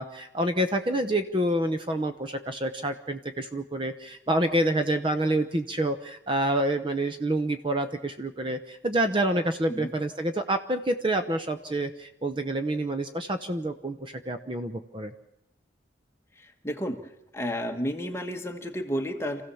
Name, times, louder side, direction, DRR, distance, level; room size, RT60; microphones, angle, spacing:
voice 1, 0.0-15.1, right 1 dB, 25° right, 8 dB, 0.8 m, -28 dB
voice 2, 16.6-17.0 17.3-19.4, equal, 15° left, 4 dB, 1.5 m, -31 dB
27.0 x 15.5 x 7.1 m, 0.88 s
head